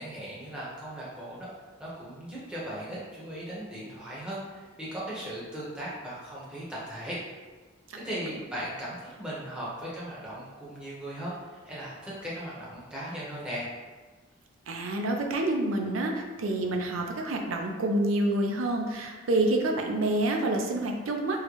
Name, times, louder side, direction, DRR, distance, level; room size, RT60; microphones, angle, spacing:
voice 1, 0.0-1.5 1.8-7.2 8.0-13.7, right 1 dB, 5° right, -8 dB, 0.8 m, -38 dB
voice 2, 14.7-21.4, right 1 dB, 80° right, 2 dB, 0.5 m, -28 dB
3.7 x 2.1 x 3.0 m, 1.3 s
head